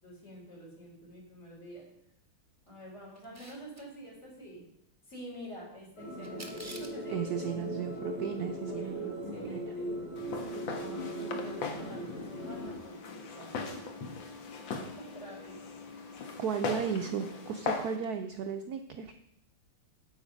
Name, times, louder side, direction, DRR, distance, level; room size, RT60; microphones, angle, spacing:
voice 1, 0.0-1.8 2.7-4.6 5.1-7.3 8.7-9.9 10.8-13.8 15.0-15.9 16.2-17.4, equal, 30° left, -4 dB, 4.2 m, -48 dB
Camera, 3.1-3.8 6.2-7.0, right 2 dB, 15° right, 0.7 m, -47 dB
sound 1, 6.0-12.8, equal, 85° left, 4.4 m, -39 dB
voice 2, 7.1-9.1 9.4-9.6 16.4-19.1, right 7 dB, 80° right, 7 dB, 0.8 m, -35 dB
Walk footsteps, 10.2-18.0, left 4 dB, 65° left, 1.9 m, -39 dB
9.2 x 8.1 x 5.2 m, 0.77 s
omnidirectional pair, 2.3 m